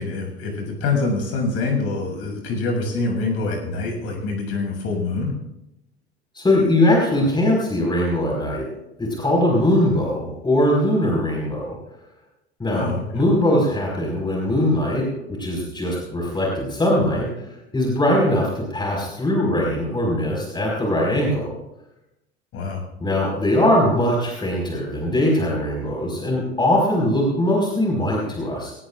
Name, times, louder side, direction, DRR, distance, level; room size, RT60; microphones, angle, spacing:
voice 1, 0.0-5.3 12.7-13.2 22.5-22.8, left 3 dB, 45° left, 2 dB, 6.9 m, -25 dB
voice 2, 6.3-8.7 9.0-11.8 12.6-15.1 15.4-17.5 17.7-21.5 23.0-28.7, left 1 dB, 15° left, -2 dB, 5.1 m, -21 dB
23.0 x 18.5 x 2.5 m, 0.90 s
figure-of-eight pair, 75°, 33 cm